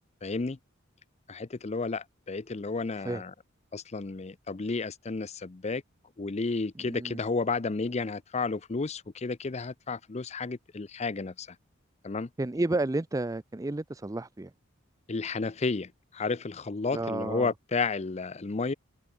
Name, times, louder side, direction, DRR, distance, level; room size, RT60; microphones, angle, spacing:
voice 1, 0.2-0.6 1.3-3.3 3.7-5.8 6.2-11.6 12.0-12.3 15.1-18.7, left 4 dB, 35° left, 0.6 m, -32 dB
voice 2, 6.8-7.2 12.4-14.5 16.9-17.5, right 2 dB, 15° right, 0.5 m, -31 dB
head